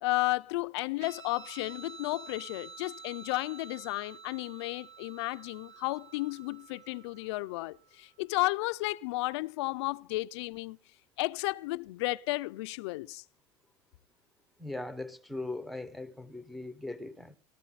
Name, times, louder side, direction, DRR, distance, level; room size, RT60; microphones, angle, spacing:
voice 1, 0.0-10.8 11.2-13.2, left 21 dB, 75° left, 0.6 m, -33 dB
Guitar, 1.0-7.9, right 5 dB, 75° right, 2.9 m, -50 dB
voice 2, 14.6-17.3, left 2 dB, ahead, 0.8 m, -39 dB
14.0 x 14.0 x 4.1 m
supercardioid pair, 165°, 15 cm